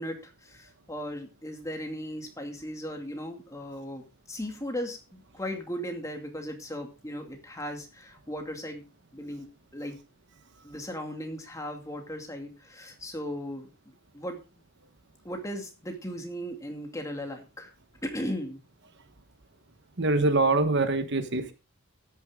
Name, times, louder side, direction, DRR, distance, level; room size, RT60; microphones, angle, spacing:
voice 1, 0.0-8.8 9.1-9.5 9.7-10.0 10.6-13.7 14.1-14.4 15.2-17.7 18.0-18.6, equal, 15° left, 2.3 m, -37 dB
voice 2, 20.0-21.5, right 2 dB, 50° right, 1.2 m, -24 dB
13.5 x 9.9 x 3.7 m
head